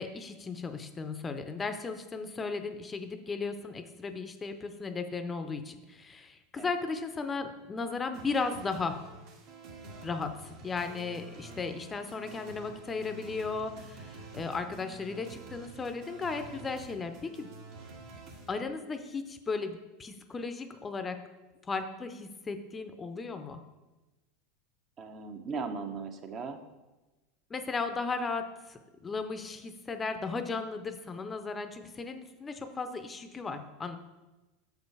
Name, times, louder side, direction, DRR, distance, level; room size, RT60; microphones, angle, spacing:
voice 1, 0.0-9.0 10.0-17.5 18.5-21.2 21.6-23.6 27.5-34.0, left 4 dB, 20° left, 8 dB, 0.6 m, -36 dB
sound 1, 8.1-18.5, right 3 dB, 65° right, 1.6 m, -48 dB
voice 2, 25.0-26.6, right 4 dB, 40° right, 6 dB, 0.8 m, -38 dB
6.3 x 5.2 x 4.7 m, 1.1 s
hypercardioid pair, 100°, 0 cm